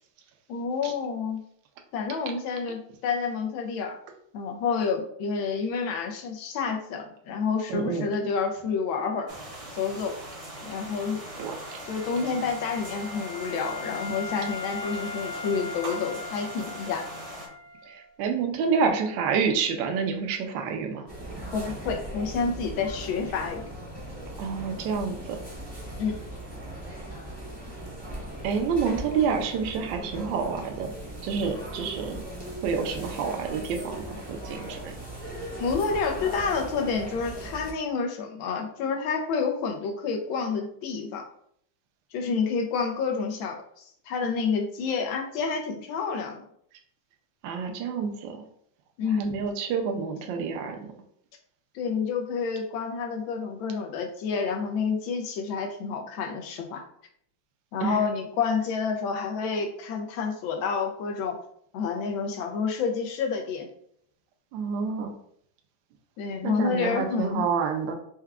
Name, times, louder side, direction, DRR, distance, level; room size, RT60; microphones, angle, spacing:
voice 1, 0.5-1.4 1.9-4.0 4.3-9.3 9.7-10.1 10.6-11.2 11.8-17.1 21.5-23.6 26.0-26.2 35.6-41.3 42.1-46.4 49.0-49.3 51.7-56.8 57.7-61.4 61.7-63.7 66.2-67.4, left 5 dB, 75° left, 3 dB, 1.3 m, -29 dB
voice 2, 7.7-8.1 11.4-11.8 17.9-21.0 24.4-25.4 28.4-30.9 31.2-32.2 32.6-34.9 47.4-48.4 49.2-50.8 57.8-58.0 64.5-65.1 66.4-67.9, right 6 dB, 70° right, 4 dB, 1.2 m, -28 dB
sound 1, 9.3-17.5, right 1 dB, 45° right, 0.4 m, -41 dB
Wind instrument woodwind instrument, 10.3-18.1, left 4 dB, 55° left, 1.1 m, -40 dB
sound 2, 21.1-37.7, right 1 dB, 20° right, 0.8 m, -38 dB
4.5 x 2.2 x 3.5 m, 0.67 s
omnidirectional pair, 2.3 m